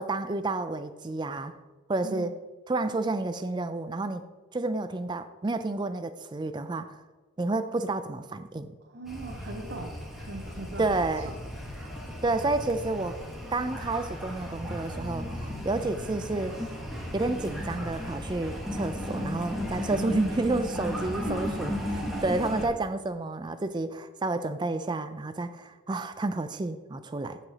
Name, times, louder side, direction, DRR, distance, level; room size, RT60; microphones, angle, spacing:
voice 1, 0.0-1.6 1.9-2.3 2.7-4.2 4.5-7.0 7.4-8.7 10.8-11.3 12.2-13.2 13.5-16.6 17.1-27.4, right 2 dB, 20° right, 10 dB, 0.3 m, -30 dB
voice 2, 8.8-10.9 11.2-11.4 11.7-11.9 21.3-21.5, right 2 dB, 50° right, 1 dB, 0.8 m, -40 dB
sound 1, 9.1-22.7, equal, ahead, 1.2 m, -35 dB
14.0 x 4.9 x 2.8 m, 1.3 s
head